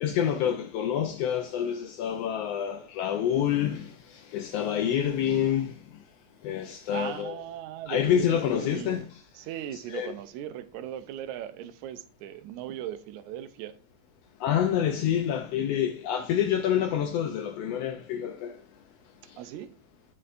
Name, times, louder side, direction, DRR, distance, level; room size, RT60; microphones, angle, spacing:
voice 1, 0.0-6.0 6.4-7.4 7.9-9.2 9.7-10.1 14.4-18.6 19.3-19.4, left 9 dB, 80° left, 1.4 m, -27 dB
voice 2, 6.9-9.0 9.4-13.8 19.4-19.7, right 11 dB, 85° right, 2.0 m, -38 dB
9.5 x 5.5 x 2.5 m
omnidirectional pair, 3.3 m